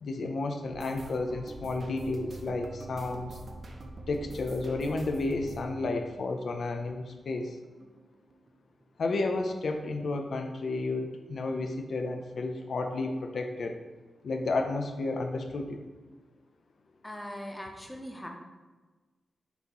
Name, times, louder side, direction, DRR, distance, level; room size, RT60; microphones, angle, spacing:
voice 1, 0.0-3.4 4.1-7.6 9.0-13.7 14.2-15.8, left 3 dB, 60° left, 4 dB, 0.5 m, -32 dB
sound 1, 0.7-7.5 7.8-8.9 9.1-9.5 9.8-10.0, right 2 dB, 40° right, 0.6 m, -45 dB
voice 2, 17.0-18.3, equal, 5° left, 1 dB, 0.7 m, -40 dB
6.0 x 3.0 x 5.4 m, 1.3 s
wide cardioid pair, 160°, 0 cm